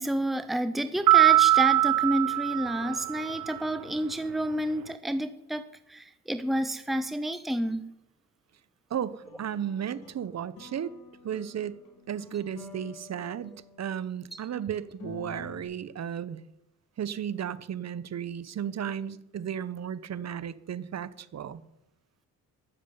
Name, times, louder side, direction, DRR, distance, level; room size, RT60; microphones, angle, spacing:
voice 1, 0.0-5.6 5.9-7.8, right 1 dB, ahead, 11 dB, 0.9 m, -30 dB
sound 1, 1.1-3.6, right 16 dB, 80° right, 0.7 m, -22 dB
voice 2, 8.9-10.9 11.2-11.8 12.1-16.4 17.0-21.6, right 9 dB, 55° right, 17 dB, 1.0 m, -34 dB
sound 2, 9.2-14.3 14.8-15.6, left 6 dB, 80° left, 3.9 m, -49 dB
12.0 x 7.4 x 9.8 m, 0.87 s
cardioid pair, 70°, 33 cm